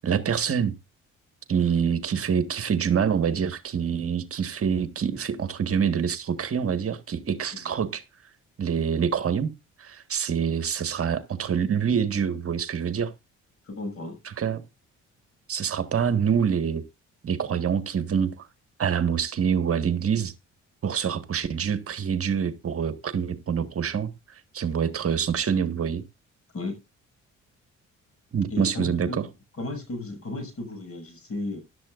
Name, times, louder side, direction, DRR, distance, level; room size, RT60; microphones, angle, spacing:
voice 1, 0.0-0.7 1.5-8.0 8.6-9.5 9.8-13.1 14.3-14.6 15.5-16.8 17.2-18.5 18.8-20.3 20.8-26.0 28.3-29.2, right 7 dB, 50° right, 1.6 m, -26 dB
voice 2, 13.7-14.2 26.5-26.8 28.5-29.2 29.6-31.6, left 2 dB, 50° left, 6.5 m, -34 dB
15.0 x 11.5 x 2.5 m
cardioid pair, 90°, 30 cm